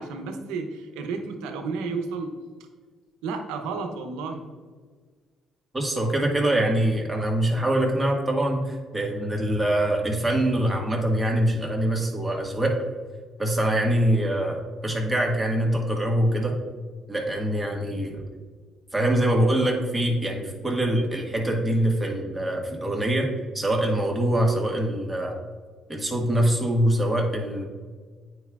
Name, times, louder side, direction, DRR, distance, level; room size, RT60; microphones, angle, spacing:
voice 1, 0.0-2.3 3.2-4.4, right 4 dB, 90° right, 5 dB, 0.7 m, -32 dB
voice 2, 5.7-12.8 13.4-16.5 17.1-18.2 18.9-25.3 25.9-27.7, right 1 dB, 15° right, 0 dB, 1.5 m, -24 dB
9.1 x 4.8 x 2.4 m, 1.5 s
supercardioid pair, 70°, 0 cm